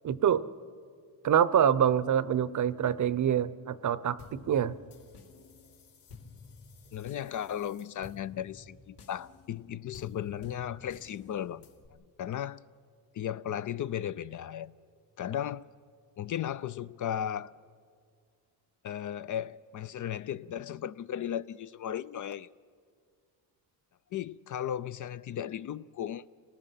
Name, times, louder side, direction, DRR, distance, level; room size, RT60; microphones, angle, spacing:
voice 1, 0.0-0.4 1.2-4.7, right 9 dB, 45° right, 0.7 m, -26 dB
sound 1, 4.2-11.9, left 4 dB, 65° left, 2.5 m, -52 dB
voice 2, 6.9-11.6 11.9-12.6 13.1-14.7 15.2-15.7 16.2-17.5 18.8-22.5 24.1-26.2, left 10 dB, 45° left, 0.5 m, -36 dB
29.5 x 19.0 x 5.8 m
cardioid pair, 95°, 43 cm